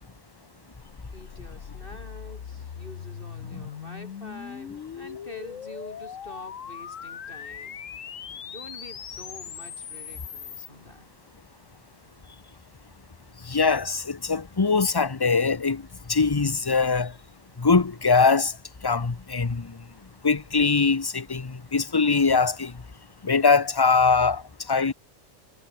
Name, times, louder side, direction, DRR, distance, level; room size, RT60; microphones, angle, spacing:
sound 1, 0.8-10.7, left 8 dB, 90° left, 1.5 m, -40 dB
voice 1, 1.1-7.8 8.5-11.1, left 1 dB, 45° left, 7.4 m, -46 dB
voice 2, 13.4-17.1 17.6-18.5 18.8-19.8 20.2-22.7 23.2-24.9, left 4 dB, 20° left, 0.7 m, -22 dB
omnidirectional pair, 1.3 m